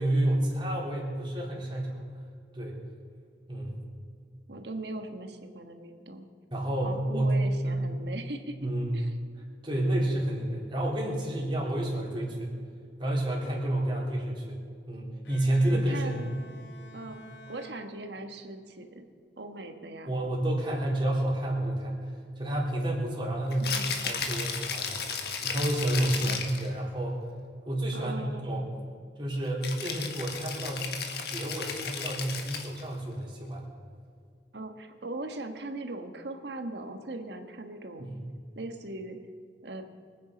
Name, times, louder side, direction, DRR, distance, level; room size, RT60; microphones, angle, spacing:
voice 1, 0.0-2.0 2.5-2.8 3.5-3.9 6.5-7.8 8.6-9.0 9.6-12.6 13.0-14.6 14.9-16.2 20.1-22.1 22.4-27.2 27.7-28.7 29.2-30.9 31.3-33.6 38.0-38.2, right 1 dB, 25° right, -3 dB, 3.7 m, -30 dB
voice 2, 4.5-6.3 6.8-8.6 8.9-9.1 15.7-16.3 16.9-19.0 19.4-20.1 23.6-23.9 26.2-26.4 27.9-28.5 34.5-38.1 38.5-39.2 39.6-39.8, right 2 dB, 70° right, 6 dB, 1.4 m, -39 dB
Bowed string instrument, 15.2-18.6, equal, 85° left, 2.6 m, -51 dB
Rattle (instrument), 23.5-26.7 29.6-32.8, left 6 dB, 60° left, 1.7 m, -34 dB
24.5 x 9.5 x 5.3 m, 2.3 s
head